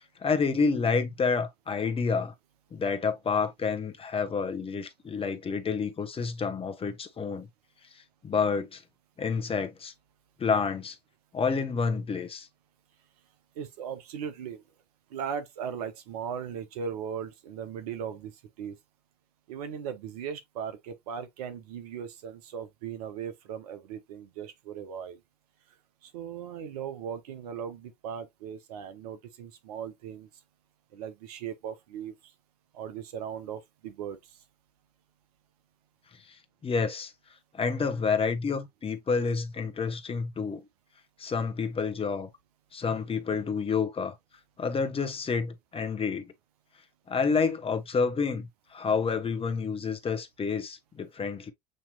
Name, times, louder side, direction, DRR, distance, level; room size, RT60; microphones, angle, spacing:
voice 1, 0.2-2.3 2.7-7.5 8.2-8.8 9.2-9.9 10.4-11.0 11.3-12.5 36.3-36.4 36.6-37.1 37.5-40.6 41.2-42.3 42.7-44.2 44.6-46.3 47.1-51.5, left 5 dB, 30° left, 1.0 m, -29 dB
voice 2, 13.6-14.6 15.1-18.3 18.6-18.8 19.5-25.2 26.0-30.3 30.9-32.1 32.7-34.2, right 7 dB, 75° right, 0.8 m, -38 dB
7.6 x 2.9 x 2.3 m
hypercardioid pair, 65°, 20 cm